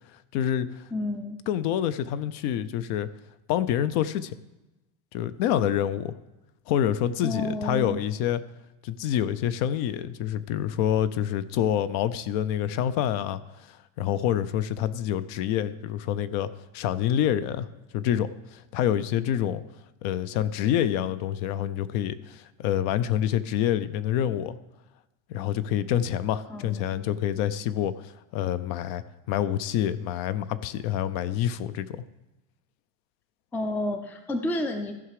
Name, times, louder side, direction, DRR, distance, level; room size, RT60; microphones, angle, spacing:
voice 1, 0.3-0.8 1.5-3.1 3.5-4.3 5.1-6.1 6.7-8.4 8.8-13.4 14.0-17.7 17.9-19.6 20.0-24.6 25.3-32.0, left 10 dB, 60° left, 14 dB, 0.6 m, -27 dB
voice 2, 0.9-1.4 7.2-8.0 26.5-27.1 33.5-34.9, left 1 dB, 5° left, 6 dB, 0.3 m, -30 dB
15.0 x 5.9 x 4.8 m, 1.0 s
cardioid pair, 155°, 41 cm